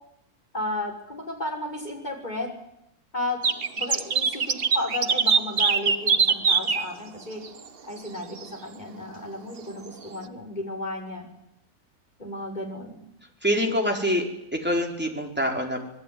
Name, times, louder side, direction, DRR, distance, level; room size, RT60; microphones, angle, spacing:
voice 1, 0.5-2.5 3.1-3.4 3.8-7.4 7.9-11.3 12.2-13.0, left 1 dB, 30° left, 1 dB, 6.1 m, -33 dB
sound 1, 3.4-6.9 7.4-7.5 8.0-8.1 8.4-8.5, right 5 dB, 40° right, 1.2 m, -22 dB
voice 2, 13.4-14.3 14.5-15.9, equal, 5° right, 1 dB, 4.6 m, -25 dB
27.0 x 20.0 x 9.5 m, 0.81 s
omnidirectional pair, 1.6 m